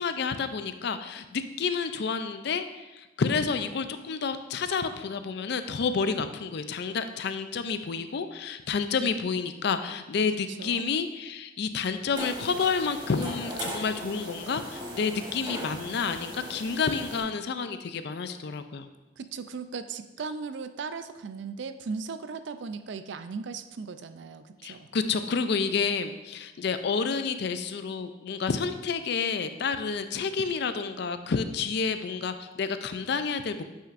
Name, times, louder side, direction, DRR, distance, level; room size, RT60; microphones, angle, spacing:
voice 1, 0.0-18.9 24.6-33.6, left 5 dB, 55° left, 10 dB, 0.4 m, -29 dB
voice 2, 10.5-10.8 19.2-24.9, right 5 dB, 60° right, 11 dB, 0.4 m, -37 dB
sound 1, 12.2-17.2, equal, 20° right, 1.2 m, -39 dB
8.5 x 5.9 x 2.5 m, 1.1 s
head